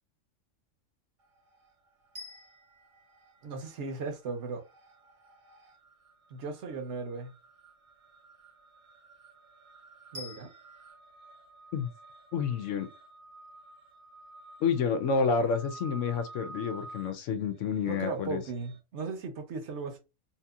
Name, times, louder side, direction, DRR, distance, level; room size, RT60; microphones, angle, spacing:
sound 1, 1.2-1.9 2.2-18.8, right 2 dB, 80° right, 1.4 m, -52 dB
sound 2, 2.1-4.3 10.1-10.9, left 2 dB, 30° right, 0.6 m, -49 dB
voice 1, 3.4-4.6 6.3-7.3 10.1-10.5 17.9-20.0, right 4 dB, 65° right, 1.0 m, -37 dB
voice 2, 12.3-12.9 14.6-18.4, left 5 dB, 75° left, 0.9 m, -29 dB
2.8 x 2.8 x 2.3 m
omnidirectional pair, 1.3 m